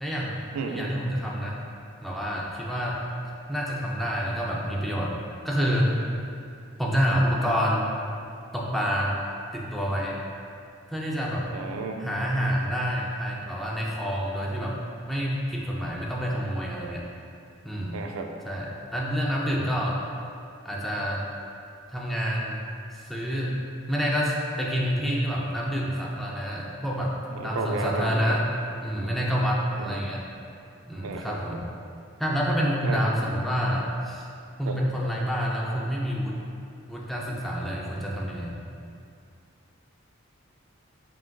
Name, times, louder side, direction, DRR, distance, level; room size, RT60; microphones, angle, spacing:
voice 1, 0.0-0.4 0.7-1.6 2.0-5.2 5.4-5.9 6.8-7.9 8.5-9.2 9.5-10.2 10.9-11.5 12.0-17.0 17.6-18.0 18.5-20.0 20.6-21.3 21.9-22.6 22.9-27.2 27.4-28.5 28.8-30.2 30.9-31.6 32.2-34.3 34.6-36.4 36.9-38.6, equal, ahead, -4 dB, 0.4 m, -28 dB
voice 2, 0.5-1.0 11.5-12.1 17.9-18.3 27.3-28.4 29.8-30.0 31.0-31.6 32.8-33.1 34.6-34.8, right 3 dB, 85° right, 3 dB, 0.3 m, -32 dB
5.8 x 2.5 x 2.2 m, 2.5 s
head